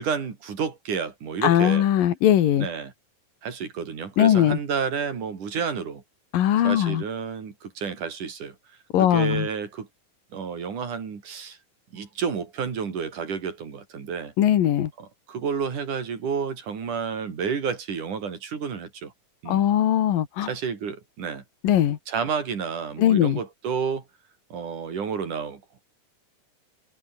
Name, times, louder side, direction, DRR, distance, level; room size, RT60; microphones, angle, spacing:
voice 1, 0.0-1.9 2.6-2.9 3.4-6.0 6.6-8.5 9.0-9.9 10.3-11.6 11.9-14.3 15.0-19.1 19.4-19.7 20.4-21.4 22.1-24.0 24.5-25.6, right 6 dB, 65° right, 5.0 m, -30 dB
voice 2, 1.4-2.7 4.2-4.6 6.3-7.0 8.9-9.5 14.4-14.9 19.5-20.5 21.6-22.0 23.0-23.4, left 11 dB, 85° left, 3.4 m, -20 dB
omnidirectional pair, 3.9 m